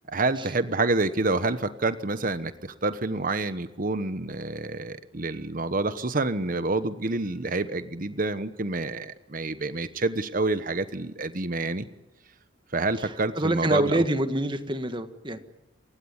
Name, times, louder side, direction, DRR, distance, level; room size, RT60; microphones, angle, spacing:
voice 1, 0.1-11.8 12.7-14.0, right 3 dB, 45° right, 12 dB, 1.1 m, -28 dB
voice 2, 13.0-15.4, right 1 dB, 25° right, 9 dB, 1.6 m, -26 dB
28.5 x 16.0 x 9.8 m, 0.96 s
head